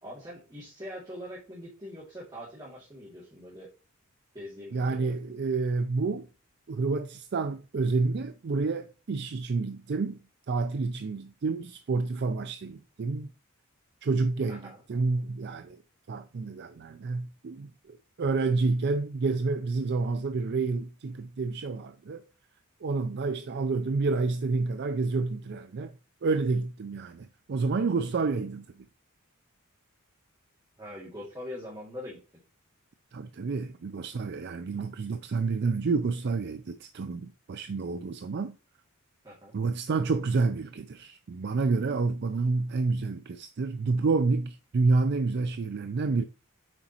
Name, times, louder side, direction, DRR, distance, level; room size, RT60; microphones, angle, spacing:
voice 1, 0.0-3.7 4.3-5.1 14.5-14.8 30.8-32.2 39.2-39.5, left 1 dB, 20° right, 2.3 m, -42 dB
voice 2, 4.7-6.3 6.7-10.2 10.5-13.3 14.0-15.8 16.1-22.2 22.8-25.9 26.2-28.7 33.1-38.6 39.5-46.2, right 3 dB, 50° right, 0.4 m, -29 dB
7.5 x 5.0 x 2.9 m
head